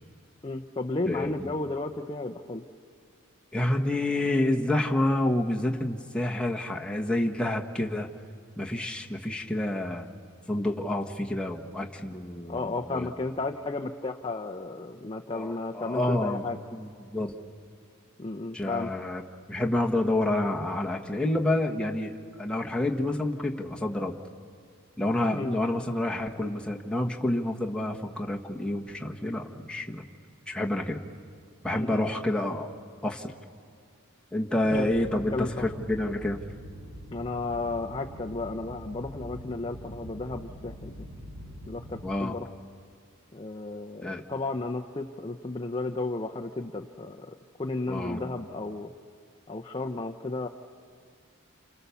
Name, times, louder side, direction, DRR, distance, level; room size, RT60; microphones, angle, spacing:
voice 1, 0.4-2.6 12.5-16.6 18.2-18.9 25.3-25.5 31.8-32.1 34.7-34.9 35.3-35.7 37.1-41.0 41.7-42.5 43.3-48.9 49.5-50.5, left 2 dB, 25° left, 2 dB, 0.7 m, -33 dB
voice 2, 1.1-1.5 3.5-8.1 8.6-10.1 10.5-13.1 15.3-16.4 16.7-17.4 18.5-19.2 19.5-22.1 22.4-24.2 25.0-30.1 30.5-31.0 31.6-32.7 33.0-33.3 34.3-36.4 42.0-42.3 44.0-44.2 47.9-48.3, left 1 dB, 5° left, 0 dB, 1.3 m, -28 dB
sound 1, 34.6-42.0, equal, 85° right, 5.0 m, -44 dB
29.5 x 28.5 x 7.0 m, 2.2 s
head